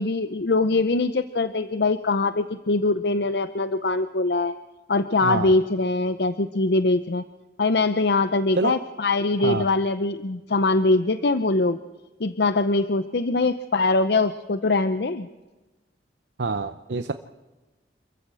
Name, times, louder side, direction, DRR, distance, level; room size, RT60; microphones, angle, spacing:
voice 1, 0.0-4.6 4.9-7.2 7.6-11.8 12.2-15.3, left 3 dB, 65° left, 11 dB, 0.7 m, -22 dB
voice 2, 5.2-5.5 8.6-8.7 9.4-9.6 16.4-17.1, right 3 dB, 75° right, 9 dB, 0.7 m, -26 dB
27.0 x 14.5 x 7.6 m, 1.2 s
head